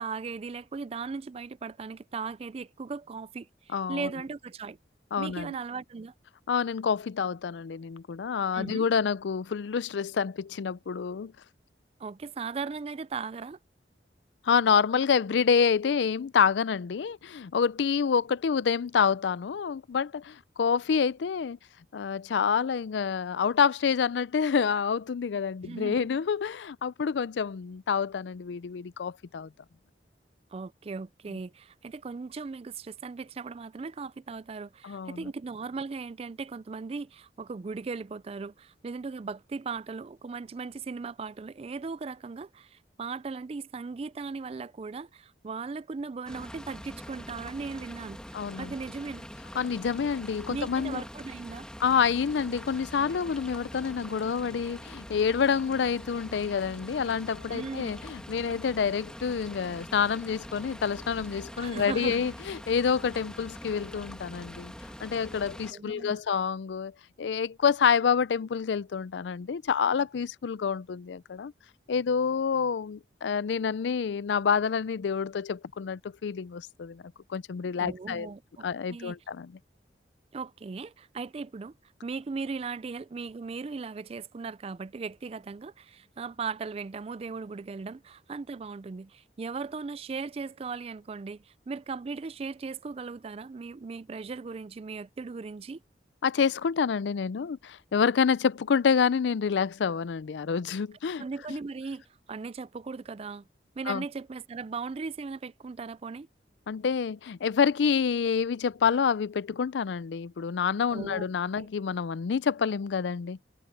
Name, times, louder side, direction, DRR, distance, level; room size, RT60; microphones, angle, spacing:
voice 1, 0.0-4.8 5.2-6.1 8.5-8.9 12.0-13.6 25.6-26.1 30.5-48.2 48.5-49.3 50.5-51.7 57.5-57.9 61.6-62.3 65.7-66.2 77.8-79.2 80.3-81.7 82.0-95.8 101.2-102.0 102.3-103.5 103.8-106.3 110.9-111.3 111.6-111.7, right 4 dB, 35° right, 0.4 m, -38 dB
voice 2, 3.7-4.1 5.1-5.6 6.5-11.3 14.4-21.6 21.9-29.5 34.8-35.3 48.3-48.7 49.6-51.0 51.8-64.7 65.0-66.9 67.2-71.5 71.9-77.0 77.3-78.3 78.6-79.5 96.2-101.2 103.9-104.0 106.7-113.4, left 6 dB, 85° left, 0.4 m, -27 dB
sound 1, 46.3-65.7, equal, 5° left, 1.7 m, -44 dB
head